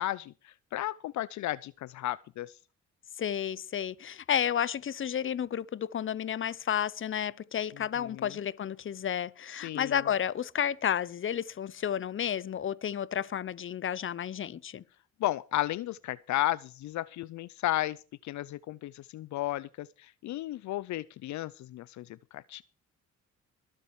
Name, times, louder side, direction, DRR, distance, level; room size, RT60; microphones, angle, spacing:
voice 1, 0.0-2.6 8.0-8.3 9.6-10.0 15.2-22.6, left 15 dB, 70° left, 0.5 m, -34 dB
voice 2, 3.2-14.8, left 9 dB, 40° left, 0.8 m, -31 dB
22.0 x 7.6 x 4.7 m
cardioid pair, 90°, 30 cm